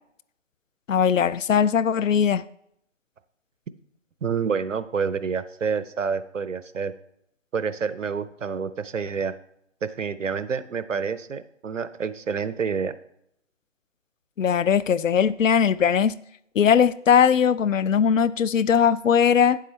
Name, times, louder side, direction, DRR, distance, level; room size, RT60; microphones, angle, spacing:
voice 1, 0.9-2.4 14.4-16.2 16.6-19.6, left 7 dB, 75° left, 0.5 m, -20 dB
voice 2, 4.2-6.9 7.5-9.3 9.8-12.9, right 6 dB, 70° right, 0.7 m, -28 dB
9.4 x 7.7 x 3.2 m
figure-of-eight pair, 165°, 39 cm